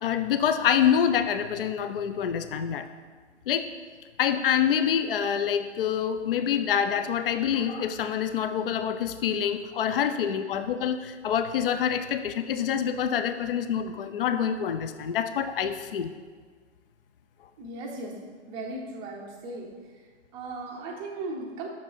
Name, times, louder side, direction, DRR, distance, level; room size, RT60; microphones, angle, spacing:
voice 1, 0.0-2.9 3.5-3.7 4.2-16.1, left 8 dB, 55° left, 10 dB, 0.4 m, -26 dB
voice 2, 17.6-18.1 18.5-19.7 20.3-21.7, right 2 dB, 10° right, 0 dB, 0.5 m, -37 dB
6.1 x 5.2 x 4.5 m, 1.5 s
figure-of-eight pair, 120°, 35 cm